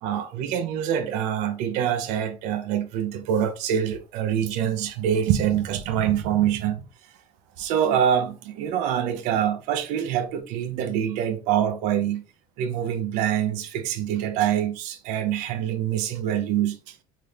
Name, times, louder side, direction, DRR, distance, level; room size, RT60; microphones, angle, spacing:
voice 1, 0.0-6.8 7.6-12.2 12.6-16.9, right 9 dB, 60° right, 0.5 m, -25 dB
3.3 x 2.9 x 2.4 m
cardioid pair, 165°, 15 cm